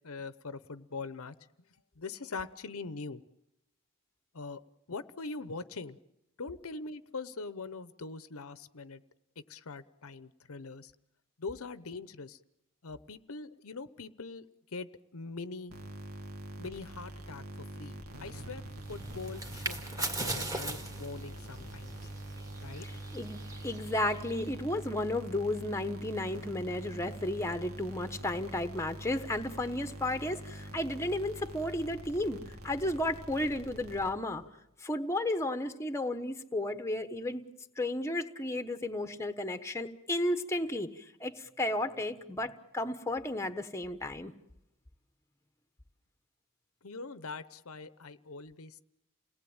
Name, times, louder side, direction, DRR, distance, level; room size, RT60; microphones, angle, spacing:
voice 1, 0.0-1.3 2.0-3.2 4.3-4.6 4.9-6.0 6.4-9.0 9.5-10.9 11.4-12.4 12.8-14.5 14.7-15.7 16.6-22.1 22.6-22.9 46.8-48.8, left 4 dB, 65° left, 14 dB, 0.9 m, -42 dB
sound 1, 15.7-34.5, right 1 dB, 70° right, 2.2 m, -45 dB
sound 2, 18.8-24.5, right 2 dB, 15° right, 2.2 m, -40 dB
voice 2, 23.6-34.4 34.8-37.5 37.8-44.3, left 1 dB, 10° left, 9 dB, 1.1 m, -33 dB
28.5 x 19.0 x 8.8 m, 0.87 s
head